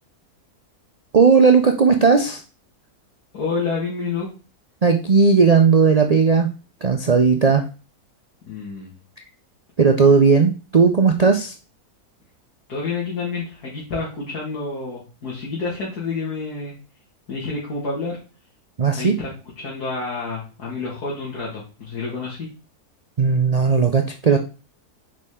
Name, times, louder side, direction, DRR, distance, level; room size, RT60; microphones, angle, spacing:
voice 1, 1.1-2.4 4.8-6.5 6.8-7.7 9.8-11.5 18.8-19.2 23.2-24.4, right 5 dB, 70° right, 5 dB, 0.3 m, -16 dB
voice 2, 3.3-4.3 8.5-8.9 12.7-16.7 17.3-18.2 19.0-22.5, left 4 dB, 80° left, -5 dB, 2.5 m, -29 dB
6.7 x 5.1 x 3.6 m, 0.34 s
omnidirectional pair, 1.6 m